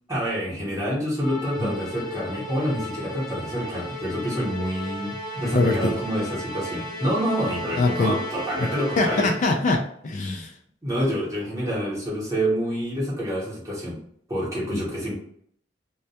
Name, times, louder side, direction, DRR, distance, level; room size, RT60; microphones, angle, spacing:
voice 1, 0.1-9.3 10.8-14.0 14.3-15.1, equal, 20° right, -5 dB, 0.9 m, -27 dB
Musical instrument, 1.2-9.7, left 1 dB, 20° left, 0.8 m, -35 dB
voice 2, 5.5-6.0 7.8-8.1 9.0-10.5 14.7-14.8, left 2 dB, 40° left, 2 dB, 0.3 m, -23 dB
2.2 x 2.1 x 2.7 m, 0.65 s
head